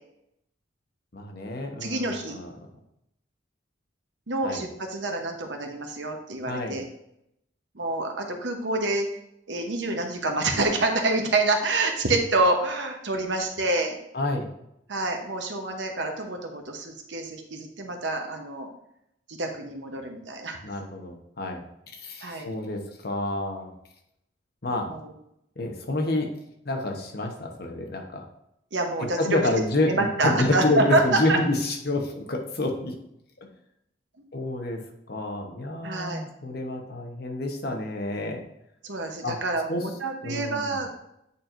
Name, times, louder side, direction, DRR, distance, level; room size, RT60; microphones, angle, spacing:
voice 1, 1.1-2.5 4.4-4.6 6.5-6.8 14.1-14.5 20.6-21.6 22.0-23.7 24.6-24.9 25.6-26.3 26.6-28.2 29.2-32.9 34.3-34.8 35.1-38.4 39.2-39.4 39.7-39.8 40.2-40.8, left 2 dB, 55° left, 2 dB, 1.0 m, -28 dB
voice 2, 1.8-2.4 4.3-6.8 7.7-9.1 9.5-14.0 14.9-18.7 19.3-20.6 22.2-22.5 24.9-25.1 28.7-29.2 29.9-31.4 35.8-36.2 38.8-41.0, right 2 dB, 70° right, 3 dB, 1.0 m, -27 dB
8.5 x 4.4 x 2.6 m, 0.78 s
head